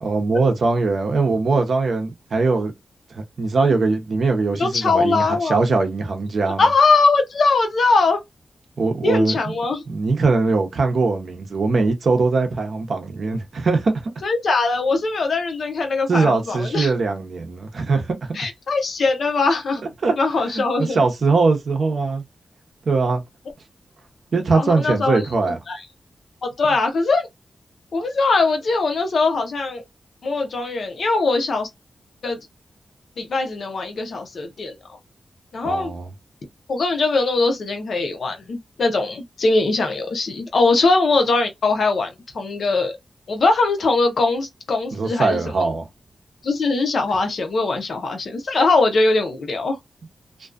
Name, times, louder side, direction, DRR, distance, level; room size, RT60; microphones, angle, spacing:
voice 1, 0.0-2.7 3.1-6.7 8.8-9.4 9.9-14.1 16.1-18.4 20.0-20.1 20.5-22.2 22.9-23.2 24.3-25.6 35.6-36.1 44.9-45.9, right 3 dB, 55° right, 0.7 m, -21 dB
voice 2, 4.6-5.6 6.6-8.2 9.0-9.8 14.2-16.9 18.3-19.8 20.2-21.0 24.5-25.2 25.7-25.8 26.4-27.3 27.9-29.8 30.2-31.7 32.2-32.4 33.2-35.0 35.5-35.9 36.7-43.0 43.3-45.4 46.4-49.8, left 3 dB, 60° left, 0.6 m, -21 dB
2.5 x 2.2 x 2.4 m
wide cardioid pair, 175°, 0 cm